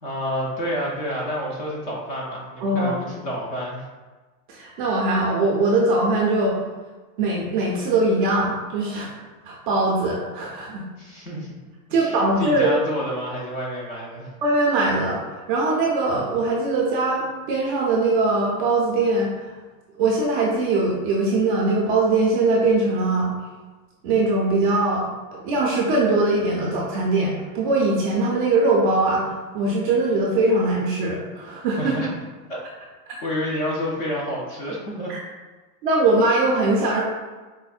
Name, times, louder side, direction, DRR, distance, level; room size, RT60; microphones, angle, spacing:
voice 1, 0.0-3.9 11.0-11.5 12.0-14.3 31.8-32.2 32.5-32.6 33.2-35.1, equal, 35° left, -3 dB, 0.4 m, -29 dB
voice 2, 2.6-2.9 4.5-6.6 7.2-9.1 9.5-10.8 11.9-12.7 14.4-15.2 15.5-19.5 20.0-23.3 24.0-25.0 25.3-29.3 29.5-31.9 35.1-35.2 35.8-37.0, right 2 dB, 35° right, -3 dB, 0.4 m, -21 dB
4.3 x 2.0 x 2.3 m, 1.3 s
supercardioid pair, 145°, 48 cm